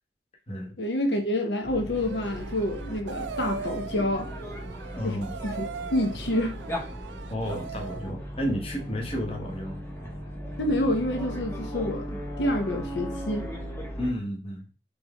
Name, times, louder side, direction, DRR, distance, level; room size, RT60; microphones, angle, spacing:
voice 1, 0.8-4.3 5.0-6.6 10.6-13.5, left 1 dB, 80° left, 0.9 m, -28 dB
sound 1, 1.6-14.1, equal, 15° left, 1.1 m, -37 dB
sound 2, 2.0-8.1, right 5 dB, 90° right, 0.4 m, -40 dB
voice 2, 4.9-5.3 7.3-9.8 14.0-14.6, equal, 35° left, 1.3 m, -32 dB
4.3 x 3.4 x 3.5 m
head